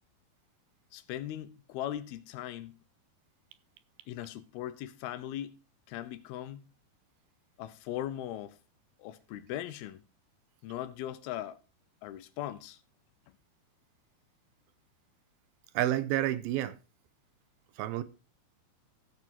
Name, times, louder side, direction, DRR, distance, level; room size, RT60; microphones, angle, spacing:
voice 1, 0.9-2.8 4.1-5.6 5.9-6.7 7.6-8.6 9.0-10.0 10.6-11.6 12.0-12.8, left 12 dB, 85° left, 2.8 m, -39 dB
voice 2, 15.7-16.8 17.8-18.0, right 13 dB, 80° right, 2.6 m, -29 dB
15.0 x 6.1 x 4.5 m
omnidirectional pair, 4.4 m